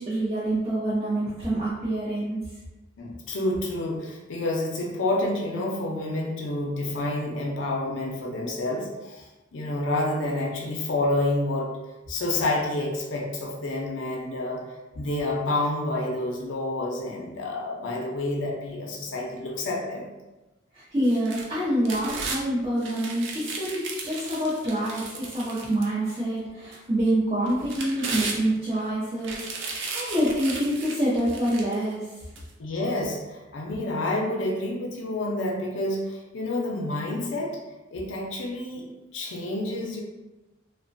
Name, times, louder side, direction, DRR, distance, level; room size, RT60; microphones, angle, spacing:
voice 1, 0.0-2.4 20.7-32.1, right 1 dB, 25° right, -11 dB, 0.6 m, -26 dB
voice 2, 3.0-9.3 9.5-11.7 12.1-14.6 15.0-20.1 32.6-37.6 37.9-40.0, left 2 dB, 75° left, -1 dB, 0.5 m, -29 dB
sound 1, 21.0-22.4 22.8-26.2 26.7-26.8 27.5-28.8 29.2-31.8 32.4-32.5, right 3 dB, 70° right, 0.4 m, -35 dB
3.0 x 2.1 x 2.5 m, 1.1 s
head